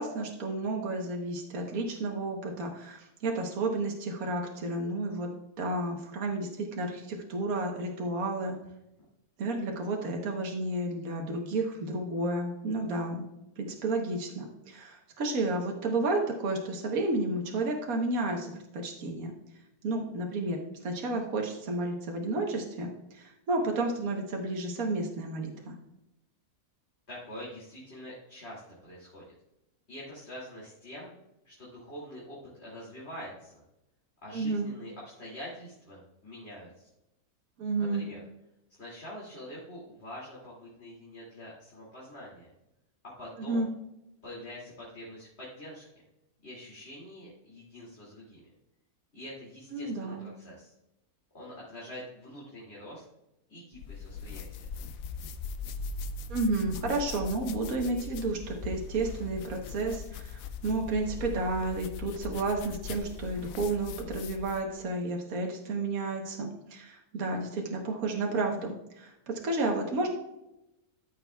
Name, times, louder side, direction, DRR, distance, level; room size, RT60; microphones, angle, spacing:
voice 1, 0.0-5.3 5.6-8.6 9.4-13.2 13.6-19.3 19.8-25.7 34.3-34.7 37.6-38.0 43.4-43.7 49.7-50.3 56.3-70.1, right 2 dB, 70° right, 1 dB, 1.6 m, -31 dB
voice 2, 27.1-29.2 29.9-31.1 31.4-33.6 34.2-36.9 37.7-38.2 38.7-42.5 43.2-43.7 44.2-45.9 46.4-48.4 49.1-50.7 51.3-53.0 53.5-54.7, equal, 45° left, -7 dB, 2.7 m, -45 dB
sound 1, 53.7-64.7, left 5 dB, 75° left, 1.0 m, -40 dB
13.5 x 6.8 x 2.3 m, 0.90 s
omnidirectional pair, 1.6 m